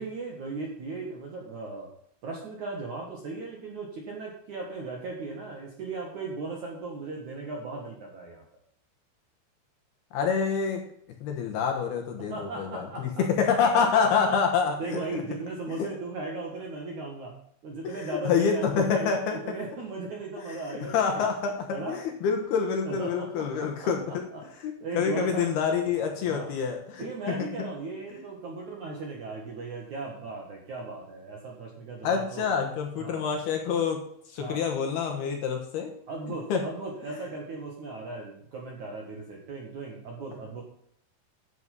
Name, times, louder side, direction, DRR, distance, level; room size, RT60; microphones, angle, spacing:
voice 1, 0.0-1.9 2.2-8.4 12.3-13.2 13.8-14.4 14.8-17.4 17.6-21.2 21.7-22.0 22.8-24.4 24.8-25.5 26.3-26.5 27.0-32.5 32.9-33.3 34.4-34.7 36.1-40.6, right 3 dB, 55° right, 0 dB, 2.2 m, -37 dB
voice 2, 10.1-10.8 11.2-15.2 15.8-15.9 17.8-19.6 20.5-20.6 20.9-24.2 24.6-27.5 28.1-28.2 32.0-34.0 34.3-35.9 36.5-36.6, left 6 dB, 65° left, 3 dB, 2.8 m, -27 dB
11.0 x 7.1 x 5.4 m, 0.69 s
omnidirectional pair, 5.6 m